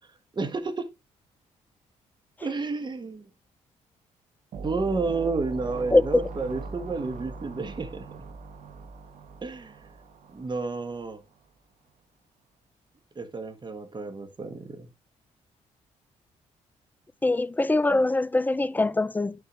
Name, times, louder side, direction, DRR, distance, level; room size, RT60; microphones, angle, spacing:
voice 1, 0.3-0.9 2.4-3.3 4.6-8.0 9.4-9.8 10.3-11.2 13.1-14.9, right 3 dB, 35° right, 1.6 m, -31 dB
sound 1, 4.5-11.0, right 3 dB, 65° right, 1.3 m, -40 dB
voice 2, 5.9-6.2 17.2-19.5, left 2 dB, 15° left, 0.5 m, -23 dB
11.5 x 4.4 x 3.1 m
cardioid pair, 70°, 14 cm